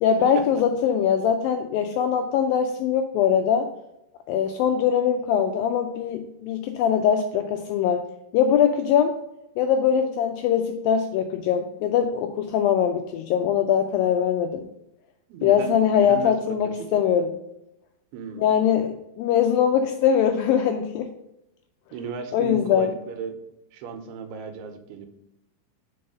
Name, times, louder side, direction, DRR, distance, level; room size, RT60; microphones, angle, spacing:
voice 1, 0.0-3.7 4.3-9.2 9.6-14.7 15.4-17.4 18.4-21.1 22.3-22.9, left 8 dB, 85° left, 6 dB, 2.0 m, -22 dB
voice 2, 15.3-17.0 18.1-18.8 21.9-23.3 23.7-25.1, right 6 dB, 80° right, 6 dB, 2.7 m, -36 dB
5.4 x 4.7 x 6.4 m, 0.86 s
omnidirectional pair, 4.6 m